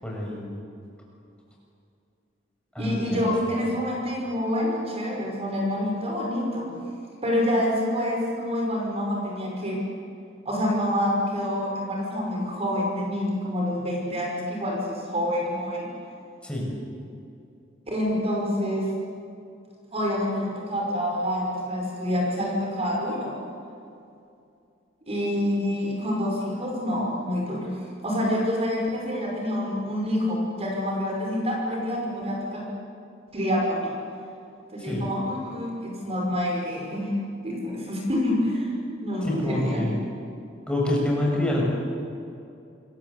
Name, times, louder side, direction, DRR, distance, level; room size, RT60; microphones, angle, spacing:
voice 1, 0.0-0.4 2.7-3.3 16.4-16.7 34.8-35.0 39.2-40.0 40.7-41.6, left 1 dB, 5° left, -3 dB, 6.9 m, -26 dB
voice 2, 2.8-6.7 7.2-9.8 10.5-15.9 17.9-18.9 19.9-23.4 25.1-32.7 33.3-33.9 34.7-37.2 37.4-38.7 39.0-39.9, left 1 dB, 35° right, -1 dB, 5.5 m, -27 dB
27.5 x 22.5 x 8.3 m, 2.5 s
head